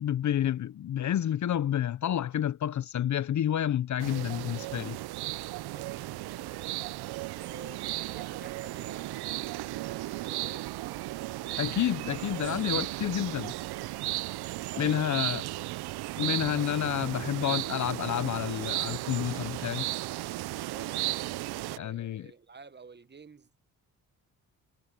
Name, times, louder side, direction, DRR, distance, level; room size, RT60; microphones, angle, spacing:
voice 1, 0.0-5.0 11.6-13.5 14.8-15.4 16.2-19.9 21.8-22.3, left 10 dB, 50° left, 0.6 m, -29 dB
sound 1, 4.0-21.8, right 17 dB, 80° right, 0.6 m, -35 dB
voice 2, 5.6-6.8 7.4-11.7 14.7-15.8 20.7-23.6, right 4 dB, 25° right, 1.2 m, -50 dB
cardioid pair, 75°, 39 cm